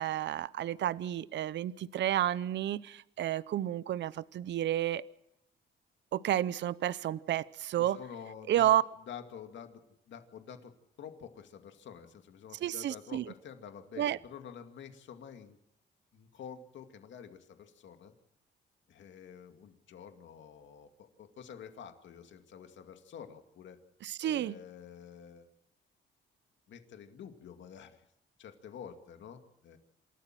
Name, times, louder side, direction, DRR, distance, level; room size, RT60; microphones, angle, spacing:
voice 1, 0.0-5.0 6.1-8.0 8.5-8.8 12.6-13.2 14.0-14.2 24.0-24.6, right 12 dB, 65° right, 18 dB, 0.7 m, -31 dB
voice 2, 7.8-8.7 9.1-9.8 10.1-10.7 11.0-15.6 16.1-18.1 18.9-23.8 24.2-25.5 26.7-28.1 28.4-29.8, left 7 dB, 70° left, 6 dB, 2.3 m, -49 dB
28.0 x 13.0 x 7.6 m, 0.81 s
cardioid pair, 90°, 20 cm